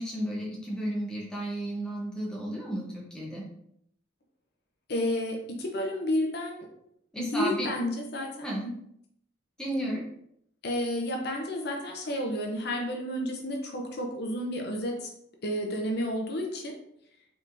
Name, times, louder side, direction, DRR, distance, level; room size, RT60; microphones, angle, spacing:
voice 1, 0.0-3.5 7.1-7.7 8.4-8.7 9.6-10.0, right 1 dB, 5° left, -4 dB, 0.9 m, -33 dB
voice 2, 4.9-6.7 7.2-8.7 10.6-15.1 15.4-16.8, left 1 dB, 55° left, 1 dB, 0.6 m, -31 dB
4.8 x 3.4 x 2.6 m, 0.73 s
head